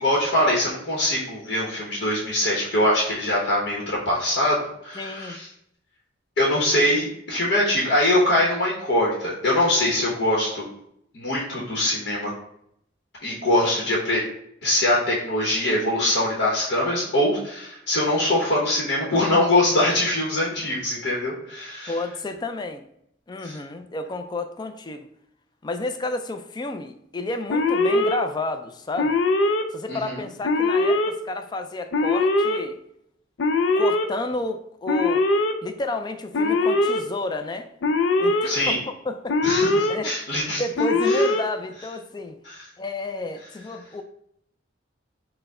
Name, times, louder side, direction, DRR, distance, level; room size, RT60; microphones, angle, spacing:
voice 1, 0.0-4.6 4.8-5.5 6.4-10.6 11.1-12.3 13.2-14.2 14.6-21.9 23.4-23.6 29.9-30.2 38.4-38.8 39.4-40.6 41.1-41.2 42.4-42.6, left 1 dB, 60° left, -4 dB, 1.0 m, -23 dB
voice 2, 5.0-5.4 21.9-22.9 23.3-25.1 25.6-29.2 29.7-32.8 33.8-35.2 35.6-37.7 38.2-38.8 39.0-39.5 39.9-40.1 40.4-42.4 42.8-44.0, left 2 dB, 25° left, 8 dB, 0.4 m, -31 dB
Alarm, 27.5-28.2 29.0-29.6 30.4-31.1 31.9-32.6 33.4-34.1 34.9-35.5 36.3-37.0 37.8-38.5 39.3-39.9 40.8-41.4, left 2 dB, 80° left, 0.5 m, -21 dB
4.6 x 2.2 x 4.7 m, 0.73 s
head